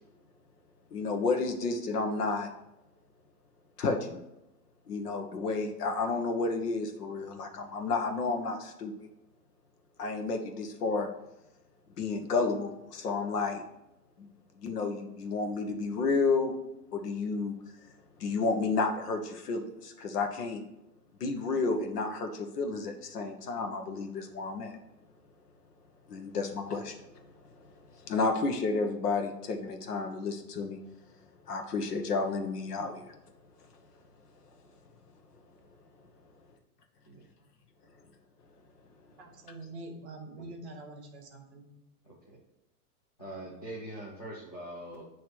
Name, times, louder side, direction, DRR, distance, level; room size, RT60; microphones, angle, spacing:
voice 1, 0.9-2.5 3.8-4.2 4.9-9.1 10.0-11.1 12.0-13.6 14.2-14.3 14.6-16.5 16.9-17.6 18.2-20.6 21.2-24.8 26.1-30.8 31.5-33.1, left 3 dB, 75° left, 5 dB, 1.1 m, -31 dB
voice 2, 39.2-41.7, right 2 dB, 45° right, 4 dB, 1.0 m, -45 dB
voice 3, 43.2-45.0, right 1 dB, 30° left, -6 dB, 0.4 m, -42 dB
8.5 x 3.1 x 4.5 m, 0.92 s
hypercardioid pair, 175°, 47 cm